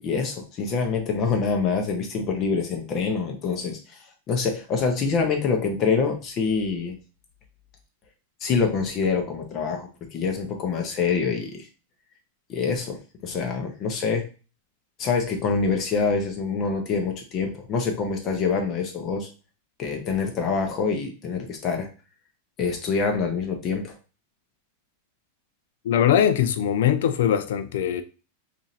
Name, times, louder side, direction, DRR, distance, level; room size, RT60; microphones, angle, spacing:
voice 1, 0.0-4.0 4.3-7.0 8.4-11.7 12.5-14.2 15.0-19.3 19.8-21.9 22.6-23.9, left 5 dB, 35° left, 1.0 m, -26 dB
voice 2, 25.8-28.0, left 9 dB, 75° left, 0.5 m, -21 dB
2.8 x 2.7 x 4.1 m
supercardioid pair, 135°, 0 cm